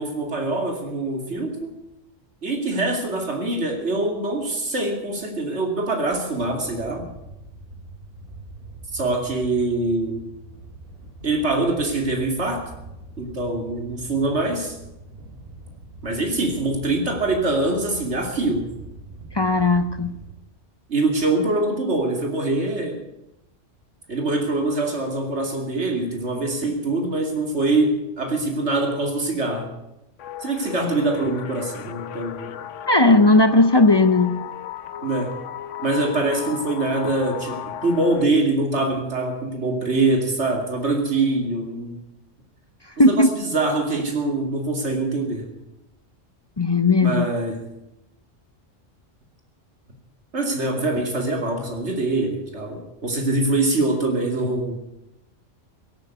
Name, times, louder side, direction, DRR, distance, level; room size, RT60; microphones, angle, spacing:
voice 1, 0.0-1.8 2.4-7.1 8.9-10.2 11.2-12.7 13.2-14.8 16.0-18.7 20.9-23.0 24.1-29.7 30.4-32.5 35.0-35.3 35.8-42.0 43.0-45.5 47.0-47.6 50.3-54.8, right 2 dB, 65° right, 3 dB, 3.0 m, -24 dB
sound 1, 6.3-20.3, right 2 dB, 45° right, 3.7 m, -43 dB
voice 2, 19.3-20.2 32.9-34.5 43.0-43.3 46.6-47.3, left 2 dB, 30° left, 11 dB, 0.5 m, -16 dB
sound 2, 30.2-38.2, left 11 dB, 80° left, 1.1 m, -36 dB
17.0 x 9.2 x 9.4 m, 0.89 s
omnidirectional pair, 1.3 m